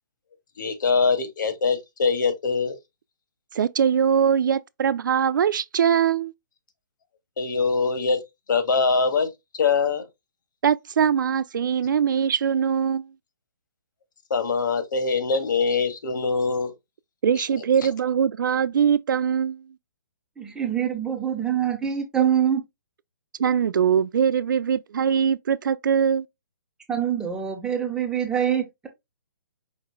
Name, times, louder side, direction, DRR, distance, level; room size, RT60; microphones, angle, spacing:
voice 1, 0.6-2.8 7.4-8.2 8.5-9.3 9.6-10.0 14.3-16.7, left 4 dB, 70° left, 1.4 m, -23 dB
voice 2, 3.5-6.3 10.6-13.1 17.2-19.6 23.4-26.3, right 8 dB, 70° right, 0.5 m, -22 dB
voice 3, 20.4-22.6 26.9-28.9, right 9 dB, 5° right, 1.0 m, -25 dB
5.2 x 3.9 x 2.3 m
hypercardioid pair, 150°, 11 cm